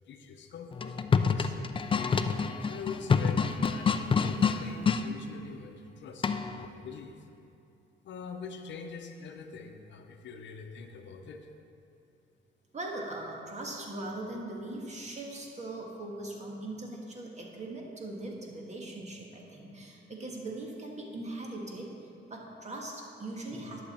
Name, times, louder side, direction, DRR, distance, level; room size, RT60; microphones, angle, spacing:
voice 1, 0.0-1.7 2.7-6.3 6.5-7.2 8.0-11.5, left 5 dB, 65° left, 5 dB, 0.8 m, -44 dB
sound 1, 0.7-5.0 6.2-6.6, left 5 dB, 25° left, 0.4 m, -27 dB
voice 2, 12.7-21.9 22.3-23.8, right 2 dB, 35° right, 0 dB, 1.7 m, -40 dB
11.0 x 6.6 x 4.3 m, 2.6 s
cardioid pair, 90°, 20 cm